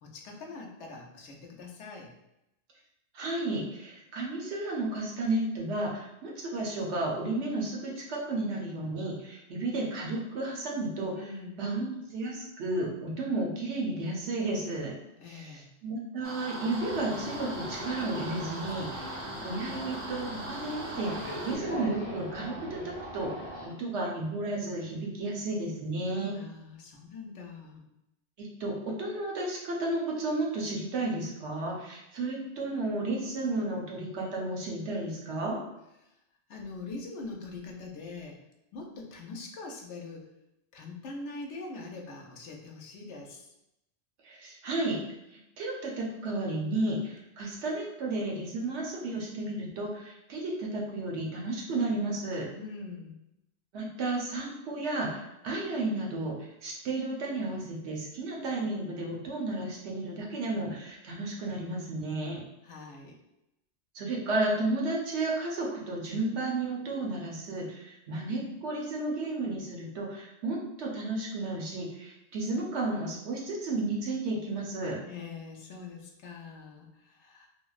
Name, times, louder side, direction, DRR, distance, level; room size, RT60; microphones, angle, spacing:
voice 1, 0.0-2.1 11.1-11.6 15.2-15.7 26.3-27.8 36.5-38.4 38.7-40.3 40.7-43.5 52.5-53.2 62.6-63.2 75.1-77.5, left 3 dB, 85° left, 1 dB, 0.9 m, -43 dB
voice 2, 3.1-11.3 11.6-14.9 15.3-26.3 28.4-28.7 29.0-35.6 44.2-45.0 45.6-52.5 53.7-62.4 63.9-75.0, right 2 dB, 80° right, -2 dB, 1.0 m, -33 dB
sound 1, 16.2-21.6, right 1 dB, 40° right, 0.4 m, -40 dB
sound 2, 16.7-23.7, equal, 20° left, 0.7 m, -41 dB
3.4 x 2.0 x 2.4 m, 0.88 s
omnidirectional pair, 1.1 m